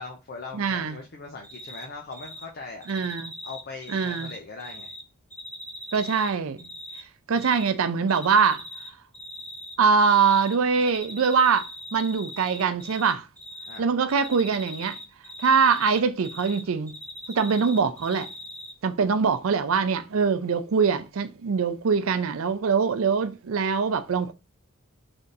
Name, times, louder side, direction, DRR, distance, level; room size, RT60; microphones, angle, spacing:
voice 1, 0.0-2.9 3.4-4.9 7.4-7.5 13.7-13.9, left 3 dB, 45° left, 0.5 m, -40 dB
voice 2, 0.5-1.0 2.9-3.3 3.9-4.3 5.9-6.7 7.3-8.6 9.8-13.3 13.8-15.0 15.4-16.9 17.3-18.3 18.8-24.3, right 5 dB, 75° right, 0.5 m, -23 dB
Cricket, 1.4-1.8 2.1-2.4 2.8-5.0 5.3-7.0 7.3-7.7 8.1-8.9 9.1-10.5 10.8-13.1 13.4-13.8 14.1-16.6 16.9-18.7, left 1 dB, 5° left, 1.0 m, -41 dB
3.4 x 2.7 x 3.9 m
head